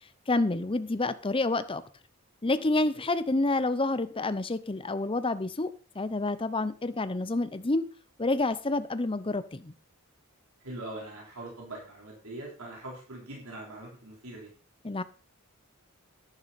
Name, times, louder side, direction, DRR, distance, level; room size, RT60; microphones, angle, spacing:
voice 1, 0.3-1.8 2.4-7.9 8.2-9.7 14.8-15.0, left 2 dB, 25° left, 0.7 m, -28 dB
voice 2, 10.6-14.5, right 1 dB, 75° right, 3.9 m, -42 dB
11.0 x 10.5 x 4.2 m
head